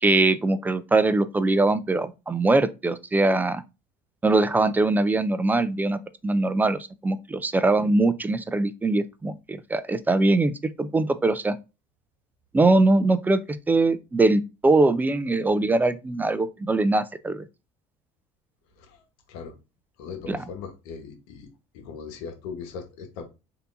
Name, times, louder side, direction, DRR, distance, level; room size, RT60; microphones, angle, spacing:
voice 1, 0.0-3.6 4.2-11.6 12.5-17.5 20.3-20.4, right 2 dB, 10° right, 0.3 m, -22 dB
voice 2, 20.0-21.5 21.7-23.2, left 6 dB, 85° left, 1.1 m, -39 dB
3.5 x 2.7 x 2.5 m
supercardioid pair, 100°, 14 cm